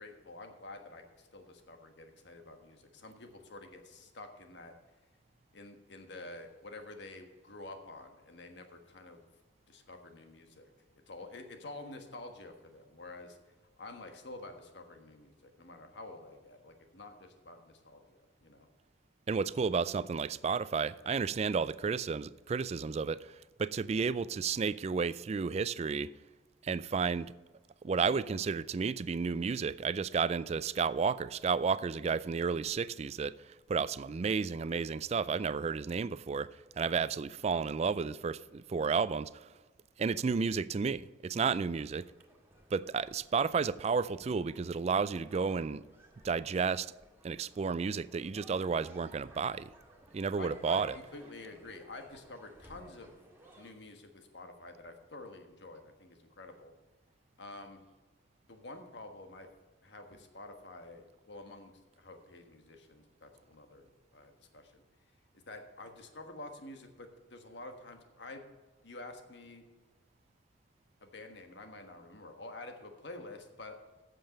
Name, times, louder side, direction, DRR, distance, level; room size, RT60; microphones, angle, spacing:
voice 1, 0.0-4.7 5.5-9.2 9.7-10.7 11.1-13.4 13.8-18.7 41.5-41.6 50.4-53.1 53.5-56.7 57.4-57.8 58.5-59.5 59.8-64.8 65.5-68.4 68.8-69.6 71.0-73.8, left 2 dB, 65° left, 1.4 m, -49 dB
voice 2, 19.3-26.1 26.6-27.3 27.8-33.3 33.7-36.5 36.8-39.5 40.0-42.1 42.7-45.8 46.2-46.9 47.2-49.7 50.1-51.0, right 5 dB, 35° right, 0.3 m, -32 dB
sound 1, 41.5-53.7, right 1 dB, 10° right, 2.0 m, -59 dB
8.9 x 7.6 x 6.7 m
head